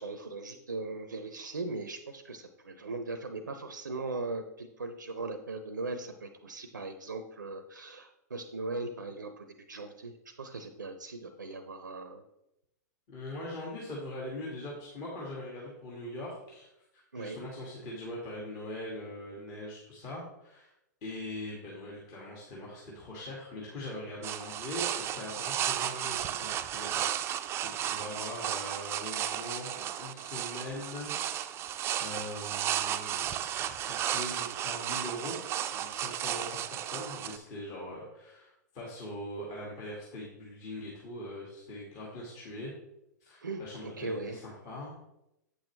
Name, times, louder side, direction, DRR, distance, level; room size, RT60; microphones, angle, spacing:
voice 1, 0.0-12.2 17.1-17.4 43.4-44.4, right 3 dB, 90° right, 9 dB, 0.6 m, -39 dB
voice 2, 13.1-16.7 16.9-20.7 21.0-27.4 27.7-31.7 32.0-33.2 33.6-35.4 35.7-42.7 43.2-45.0, left 1 dB, 35° left, -4 dB, 2.0 m, -42 dB
sound 1, 24.2-37.4, right 11 dB, 25° right, 0.4 m, -34 dB
8.2 x 6.2 x 3.2 m, 0.86 s
hypercardioid pair, 110°, 10 cm